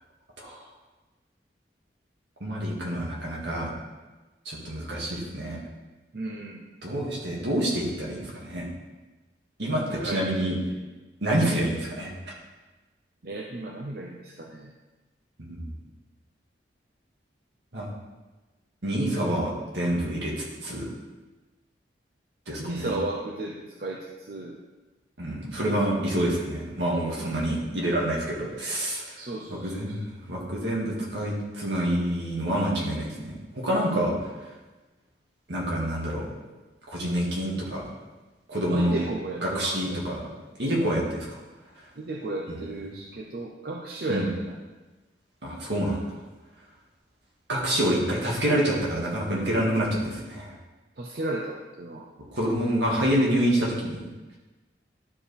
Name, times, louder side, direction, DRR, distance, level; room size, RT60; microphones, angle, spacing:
voice 1, 2.4-3.7 4.5-5.6 6.8-8.7 9.6-10.6 11.2-12.1 15.4-15.7 17.7-17.9 18.8-20.9 22.5-22.9 25.2-29.2 29.5-34.2 35.5-36.2 36.9-37.8 38.5-39.0 39.4-40.2 40.6-41.4 44.1-44.3 45.4-46.1 47.5-50.5 52.3-54.0, right 1 dB, 75° right, -3 dB, 2.0 m, -27 dB
voice 2, 6.1-6.6 9.9-10.3 13.2-14.7 22.6-24.6 27.2-27.6 29.2-30.0 38.7-40.0 42.0-44.5 51.0-52.1, right 2 dB, 55° right, 0 dB, 0.6 m, -34 dB
12.0 x 5.0 x 3.4 m, 1.2 s
head